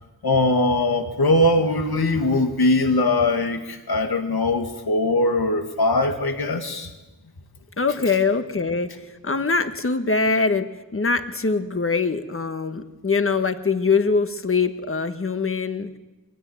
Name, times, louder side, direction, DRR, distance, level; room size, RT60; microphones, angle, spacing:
voice 1, 0.2-6.9, left 2 dB, 90° left, 5 dB, 2.2 m, -21 dB
voice 2, 7.8-8.9 9.2-15.9, left 4 dB, 35° left, 8 dB, 1.5 m, -23 dB
23.0 x 17.0 x 9.5 m, 1.1 s
wide cardioid pair, 90°, 36 cm